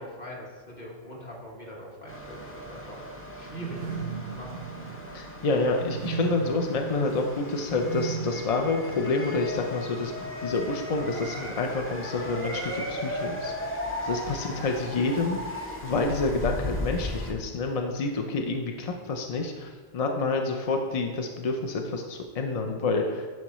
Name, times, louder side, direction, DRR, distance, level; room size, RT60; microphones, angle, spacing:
voice 1, 0.0-3.0 3.4-4.0 4.3-4.6 14.3-14.6, equal, 40° left, -3 dB, 1.6 m, -42 dB
sound 1, 2.1-17.3, left 1 dB, 15° left, 0.7 m, -36 dB
sound 2, 3.5-9.5, right 6 dB, 65° right, 0.7 m, -37 dB
voice 2, 5.1-13.5 14.0-23.3, left 3 dB, 55° left, 3 dB, 0.4 m, -28 dB
10.5 x 4.7 x 3.0 m, 1.5 s
omnidirectional pair, 1.3 m